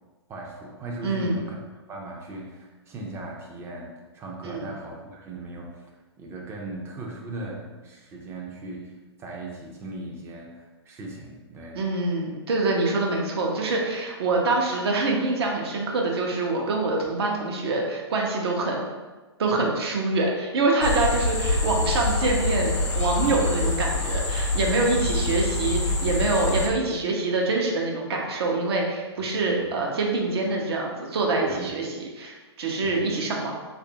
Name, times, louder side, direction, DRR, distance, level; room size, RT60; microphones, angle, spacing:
voice 1, 0.3-1.6 1.9-5.9 6.2-11.9 23.2-23.7 29.2-29.7 31.5-31.7 32.8-33.0, right 2 dB, 15° right, -1 dB, 0.5 m, -38 dB
voice 2, 1.0-1.4 4.4-4.7 11.7-18.9 19.4-33.5, right 3 dB, 60° right, 0 dB, 0.7 m, -25 dB
sound 1, 20.8-26.7, left 2 dB, 80° left, 0.7 m, -26 dB
3.2 x 2.5 x 2.8 m, 1.3 s
hypercardioid pair, 120°, 15 cm